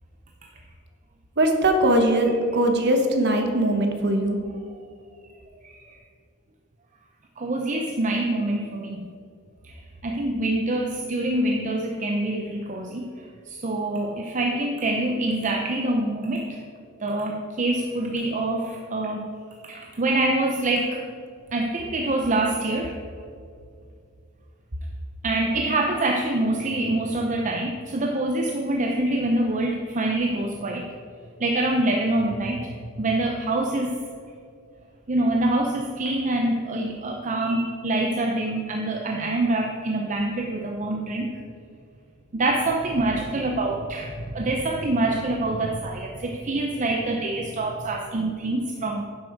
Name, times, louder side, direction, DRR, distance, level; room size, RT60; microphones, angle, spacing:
voice 1, 1.4-4.4, right 1 dB, 50° right, 4 dB, 1.2 m, -21 dB
voice 2, 5.6-6.0 7.4-9.1 9.6-16.6 17.0-19.3 19.6-21.0 21.5-23.0 25.2-30.9 31.4-34.0 35.1-41.4 42.3-49.0, right 2 dB, 35° right, 2 dB, 0.6 m, -25 dB
10.5 x 7.3 x 4.6 m, 2.3 s
head